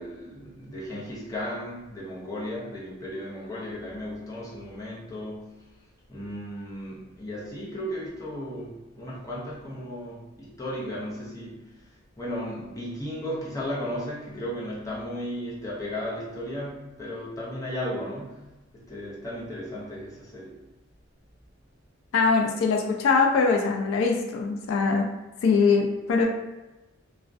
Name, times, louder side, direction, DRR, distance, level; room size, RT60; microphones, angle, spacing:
voice 1, 0.0-5.7 6.1-11.8 12.2-18.4 18.7-20.6, equal, 15° left, -6 dB, 0.6 m, -35 dB
voice 2, 22.1-25.1 25.4-26.3, left 4 dB, 80° left, 2 dB, 0.3 m, -22 dB
2.4 x 2.1 x 2.5 m, 1.1 s
head